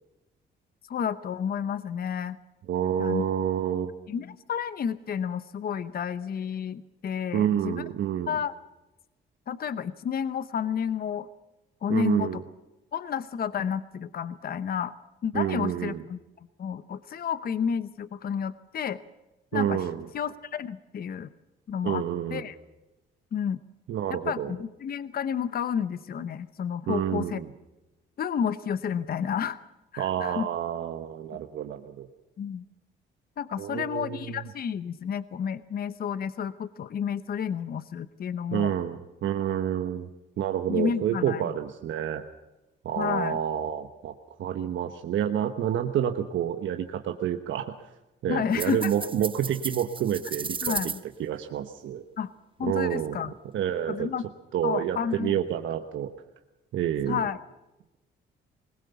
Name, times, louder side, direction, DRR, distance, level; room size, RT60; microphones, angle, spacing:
voice 1, 0.9-2.4 3.0-3.2 4.1-7.8 8.3-8.5 9.5-11.3 11.8-12.4 12.9-14.9 15.2-16.2 16.6-19.0 19.5-19.8 20.1-21.3 21.7-22.0 22.3-22.5 23.3-23.6 24.1-27.4 28.2-29.6 29.9-30.5 32.4-32.6 33.4-38.7 40.7-41.5 43.0-43.4 48.3-48.9 50.6-51.0 52.2-52.3 52.6-53.3 53.9-54.2 54.6-55.4 57.1-57.4, left 8 dB, 50° left, 14 dB, 0.8 m, -31 dB
voice 2, 2.7-3.9 7.3-8.4 11.9-12.4 15.3-16.0 19.5-20.0 21.8-22.4 23.9-24.5 26.9-27.5 30.0-32.1 33.6-34.4 38.5-40.1 40.4-42.2 42.8-44.1 44.4-47.9 48.2-50.9 51.2-52.0 52.6-53.2 53.5-54.1 54.5-56.1 56.7-57.3, right 10 dB, 75° right, 7 dB, 1.2 m, -28 dB
sound 1, 48.5-51.0, right 5 dB, 25° right, 0.9 m, -34 dB
21.5 x 19.0 x 7.0 m, 1.0 s
cardioid pair, 90°, 20 cm